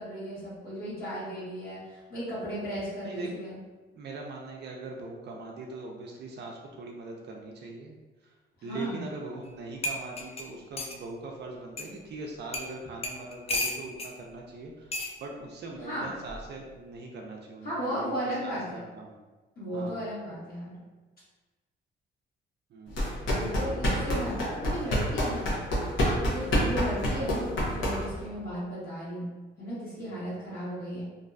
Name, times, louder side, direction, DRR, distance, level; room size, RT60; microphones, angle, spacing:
voice 1, 0.0-3.6 8.6-9.0 15.8-16.1 17.6-18.8 19.6-20.8 23.4-25.5 26.2-29.3 29.6-31.1, equal, 50° left, -10 dB, 1.2 m, -35 dB
voice 2, 3.9-8.0 8.2-8.3 8.6-19.2 19.7-20.0 22.7-23.1 26.4-26.6 30.0-30.3, right 3 dB, 60° right, 0 dB, 0.4 m, -41 dB
sound 1, 9.4-9.5 9.8-11.0 11.8-11.9 12.5-12.7 13.0-14.1 14.9-15.1 16.2-16.5, left 2 dB, 30° left, 0.4 m, -33 dB
sound 2, 22.9-28.3, equal, 80° left, 0.8 m, -27 dB
2.6 x 2.2 x 2.5 m, 1.2 s
cardioid pair, 90°, 20 cm